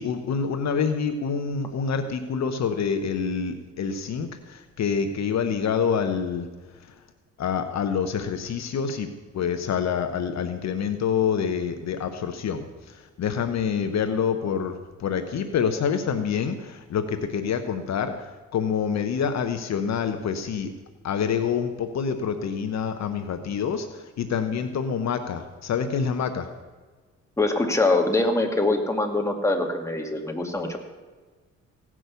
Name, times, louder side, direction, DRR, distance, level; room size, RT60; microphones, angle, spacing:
voice 1, 0.0-6.5 7.4-9.1 9.3-20.7 21.0-26.5, left 6 dB, 60° left, 8 dB, 1.1 m, -27 dB
voice 2, 27.4-30.8, left 2 dB, 10° left, 2 dB, 2.1 m, -23 dB
16.5 x 6.2 x 8.2 m, 1.4 s
cardioid pair, 90°, 30 cm